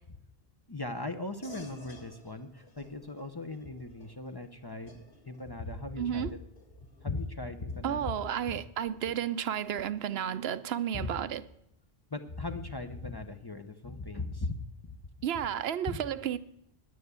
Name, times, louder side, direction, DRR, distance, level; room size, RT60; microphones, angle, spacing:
voice 1, 0.7-5.0 5.3-6.3 7.0-8.2 8.5-8.6 10.9-11.1 12.1-14.6 14.8-15.0 15.9-16.0, left 2 dB, 25° left, 0.6 m, -38 dB
sound 1, 1.4-11.3, equal, 70° left, 2.3 m, -57 dB
voice 2, 6.0-6.3 7.8-11.4 15.2-16.4, right 9 dB, 80° right, 0.9 m, -32 dB
10.0 x 9.4 x 8.1 m
omnidirectional pair, 1.0 m